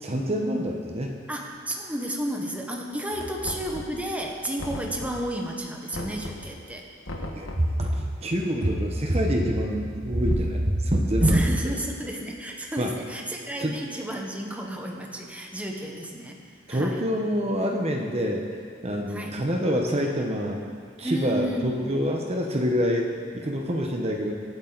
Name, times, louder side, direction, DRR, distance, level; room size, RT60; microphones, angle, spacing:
voice 1, 0.0-1.1 7.3-11.5 12.8-12.9 13.6-13.7 16.7-18.4 18.8-20.6 21.0-23.1 23.3-24.3, equal, 30° right, 1 dB, 1.1 m, -25 dB
voice 2, 1.3-6.8 11.2-16.4 16.7-17.0 19.1-19.4 21.0-22.0, right 1 dB, 5° right, 0 dB, 1.2 m, -32 dB
Knock, 3.4-4.2 4.6-5.4 5.9-6.6 7.1-7.8, left 1 dB, 80° left, 1.5 m, -37 dB
23.0 x 8.8 x 4.1 m, 2.1 s
head